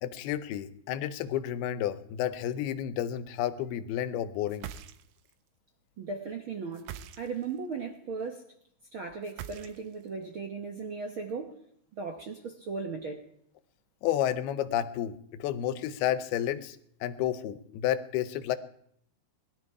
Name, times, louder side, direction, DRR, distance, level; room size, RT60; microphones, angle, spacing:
voice 1, 0.0-4.7 14.0-18.6, left 11 dB, 90° left, 13 dB, 2.8 m, -31 dB
sound 1, 4.5-5.3 6.7-7.6 9.2-10.1, right 10 dB, 80° right, 2.6 m, -43 dB
voice 2, 6.0-8.4 8.9-11.6 12.0-13.2, right 4 dB, 60° right, 3 dB, 1.3 m, -37 dB
20.5 x 12.5 x 4.8 m, 0.70 s
omnidirectional pair, 4.4 m